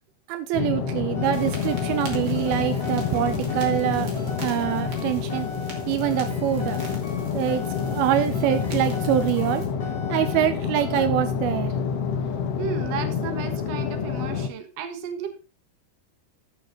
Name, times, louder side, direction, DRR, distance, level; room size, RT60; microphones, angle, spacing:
voice 1, 0.3-4.1 4.4-5.5 5.9-6.8 7.3-7.6 7.9-9.6 10.1-11.7, right 12 dB, 85° right, 10 dB, 2.6 m, -25 dB
sound 1, 0.5-14.5, left 6 dB, 90° left, 1.3 m, -28 dB
sound 2, 1.1-10.5 10.8-11.0, left 3 dB, 10° left, 1.9 m, -39 dB
sound 3, 1.3-9.7, right 4 dB, 35° right, 2.7 m, -43 dB
voice 2, 12.6-15.4, right 7 dB, 55° right, 7 dB, 2.1 m, -34 dB
13.0 x 6.8 x 3.8 m, 0.31 s
omnidirectional pair, 4.5 m